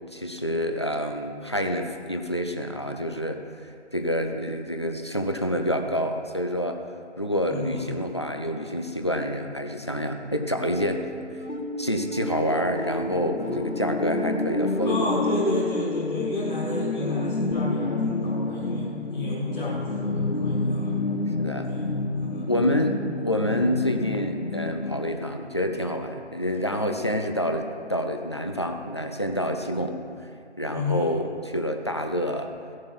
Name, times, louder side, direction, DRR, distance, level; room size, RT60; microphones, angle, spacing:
voice 1, 0.1-6.8 7.2-11.0 11.3-11.4 11.8-15.1 21.4-21.7 22.5-30.0 30.6-32.5, equal, 25° left, 5 dB, 0.6 m, -27 dB
voice 2, 7.5-7.9 14.8-21.0 21.7-21.9 22.2-22.5 30.7-31.1, left 2 dB, ahead, -15 dB, 1.9 m, -32 dB
sound 1, 10.5-17.5, equal, 75° left, 3.1 m, -34 dB
sound 2, 13.1-25.1, left 3 dB, 60° left, 1.0 m, -29 dB
16.5 x 7.4 x 6.2 m, 2.4 s
figure-of-eight pair, 155°, 36 cm